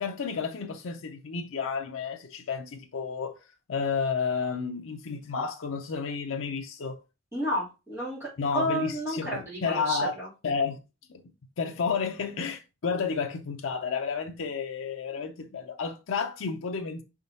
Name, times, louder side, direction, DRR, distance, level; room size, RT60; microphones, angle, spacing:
voice 1, 0.0-3.4 3.7-7.0 8.4-10.2 10.4-10.8 11.1-11.2 11.6-17.0, left 5 dB, 80° left, 0.5 m, -31 dB
voice 2, 7.3-10.3, equal, 15° right, 2.9 m, -31 dB
5.2 x 3.6 x 2.7 m
head